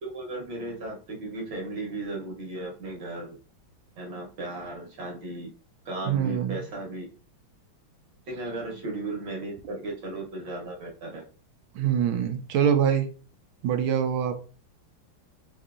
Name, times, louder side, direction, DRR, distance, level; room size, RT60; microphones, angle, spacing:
voice 1, 0.0-3.4 4.0-5.5 5.8-7.0 8.3-11.2, right 2 dB, 65° right, 0 dB, 1.6 m, -35 dB
voice 2, 6.0-6.6 11.7-13.1 13.6-14.3, right 8 dB, 85° right, 7 dB, 1.5 m, -24 dB
4.8 x 2.7 x 2.5 m, 0.37 s
omnidirectional pair, 2.2 m